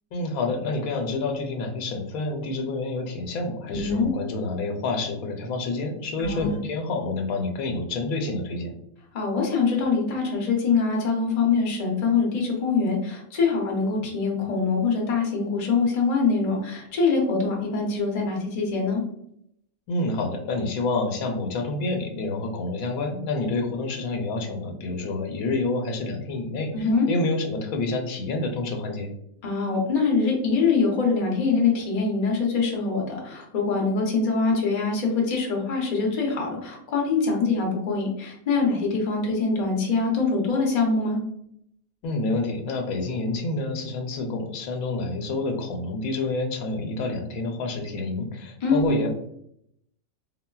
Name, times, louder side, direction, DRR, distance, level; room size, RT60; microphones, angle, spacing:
voice 1, 0.1-8.7 19.9-29.1 42.0-49.1, left 3 dB, 90° left, 3 dB, 1.0 m, -28 dB
voice 2, 3.7-4.1 6.2-6.6 9.1-19.0 26.7-27.1 29.4-41.2 48.6-48.9, left 4 dB, 40° left, -1 dB, 0.6 m, -24 dB
3.7 x 2.0 x 2.2 m, 0.73 s
omnidirectional pair, 1.4 m